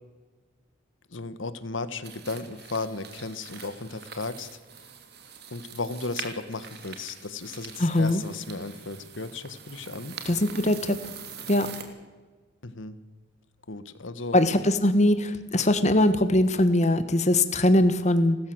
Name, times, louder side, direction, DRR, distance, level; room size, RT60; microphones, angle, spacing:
voice 1, 1.1-4.5 5.5-10.1 12.6-13.0 13.7-14.4, left 3 dB, 80° left, 13 dB, 1.4 m, -35 dB
sound 1, 2.0-11.8, right 6 dB, 55° right, 2.9 m, -43 dB
voice 2, 7.8-8.2 10.2-11.0 11.5-11.7 14.3-18.4, left 1 dB, 35° left, 11 dB, 1.3 m, -21 dB
29.5 x 13.5 x 7.9 m, 1.3 s
head